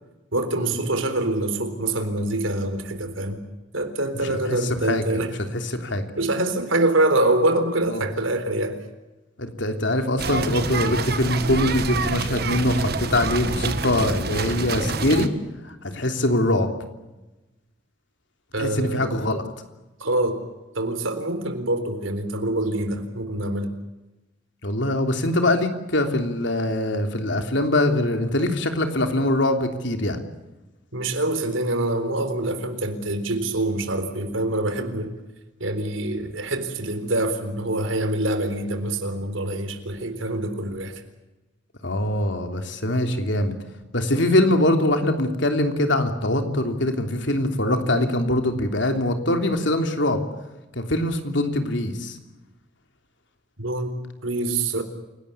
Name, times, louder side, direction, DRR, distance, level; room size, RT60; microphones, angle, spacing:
voice 1, 0.3-3.4 3.7-5.3 6.2-8.8 18.5-19.2 20.0-20.4 20.7-23.7 30.9-35.2 35.6-41.0 53.6-54.8, right 2 dB, 90° right, 9 dB, 3.9 m, -25 dB
voice 2, 4.4-5.2 5.5-6.0 7.9-8.1 9.4-15.3 15.6-16.7 18.6-19.4 24.6-30.2 41.8-43.5 43.9-50.2 50.7-52.2, left 1 dB, 70° left, 6 dB, 3.3 m, -23 dB
sound 1, 10.2-15.3, right 3 dB, 55° right, 1.7 m, -27 dB
29.0 x 18.0 x 8.5 m, 1.1 s
head